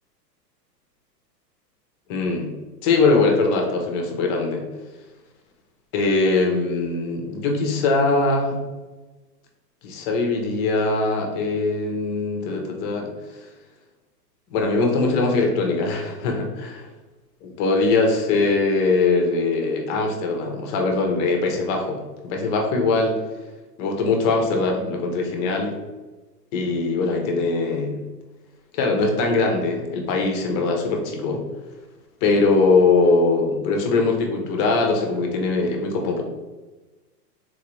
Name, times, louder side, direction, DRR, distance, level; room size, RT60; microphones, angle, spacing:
voice 1, 2.1-2.5 2.8-4.6 5.9-8.6 9.8-13.5 14.5-16.8 17.4-23.2 23.8-25.7 26.5-28.0 28.7-31.4 32.2-36.2, left 3 dB, 30° left, 2 dB, 0.6 m, -21 dB
3.9 x 2.5 x 3.0 m, 1.2 s
hypercardioid pair, 120°, 49 cm